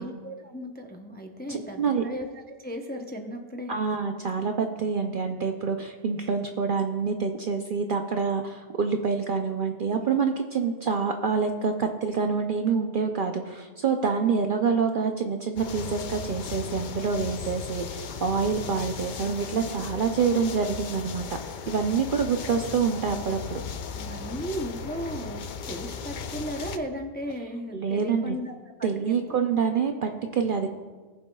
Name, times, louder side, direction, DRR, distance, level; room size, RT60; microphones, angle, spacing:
voice 1, 0.0-3.7 23.9-29.4, equal, 10° left, 3 dB, 0.5 m, -36 dB
voice 2, 1.5-2.0 3.7-21.2 21.7-23.6 27.7-28.4 28.8-30.7, right 5 dB, 55° right, 4 dB, 0.6 m, -26 dB
sound 1, 15.6-26.8, left 6 dB, 55° left, 0.5 m, -36 dB
20.0 x 7.1 x 2.3 m, 1.4 s
omnidirectional pair, 1.3 m